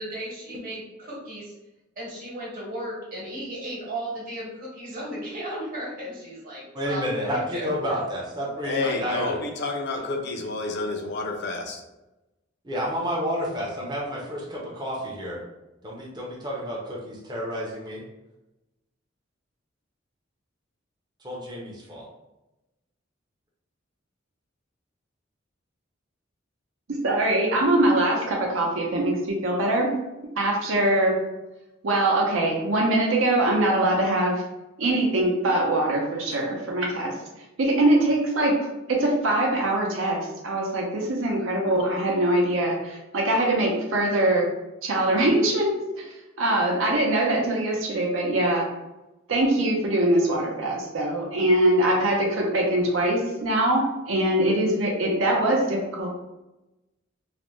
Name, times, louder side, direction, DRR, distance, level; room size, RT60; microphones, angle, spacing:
voice 1, 0.0-1.5 2.0-7.9 8.7-9.3, right 1 dB, 45° right, -5 dB, 1.0 m, -35 dB
voice 2, 6.7-9.4 12.6-15.4 15.8-18.0 21.2-22.1, equal, 20° right, -4 dB, 0.5 m, -30 dB
voice 3, 8.6-11.8, left 3 dB, 55° left, 2 dB, 0.4 m, -29 dB
voice 4, 26.9-29.9 30.4-31.2 31.8-34.4 34.8-37.1 37.6-38.5 38.9-44.5 44.8-46.0 46.4-48.7 49.3-56.1, right 1 dB, 85° right, -1 dB, 0.6 m, -23 dB
2.4 x 2.1 x 3.0 m, 0.98 s
head